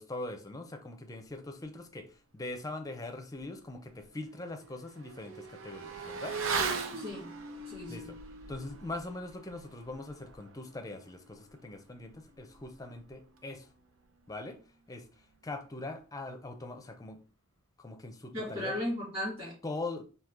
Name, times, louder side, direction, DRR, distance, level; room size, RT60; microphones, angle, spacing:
voice 1, 0.0-2.1 2.3-6.4 7.9-8.2 8.5-13.7 14.3-14.6 14.9-15.0 15.4-17.2 17.8-18.7 19.6-20.0, left 2 dB, 20° left, 0.6 m, -41 dB
Motorcycle / Accelerating revving vroom, 3.4-3.5 3.8-13.9 14.1-14.2, right 4 dB, 70° right, 0.6 m, -40 dB
voice 2, 6.9-7.3 7.7-8.1 18.3-19.5, left 1 dB, 30° right, 2.4 m, -36 dB
4.5 x 2.8 x 3.6 m
head